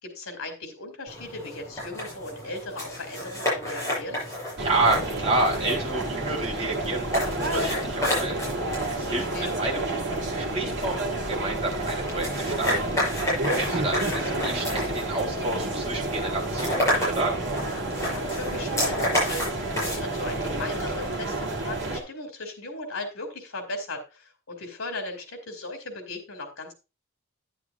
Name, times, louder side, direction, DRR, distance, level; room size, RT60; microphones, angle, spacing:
voice 1, 0.0-4.2 9.1-9.5 18.0-26.7, left 2 dB, 90° left, 5 dB, 2.5 m, -37 dB
sound 1, 1.1-20.9, left 1 dB, 15° left, 6.5 m, -32 dB
voice 2, 4.6-9.8 10.0-12.9 13.5-17.4, right 2 dB, 30° right, -1 dB, 3.0 m, -29 dB
sound 2, 4.6-22.0, right 2 dB, 55° right, 2.3 m, -30 dB
11.0 x 9.8 x 2.3 m, 0.28 s
head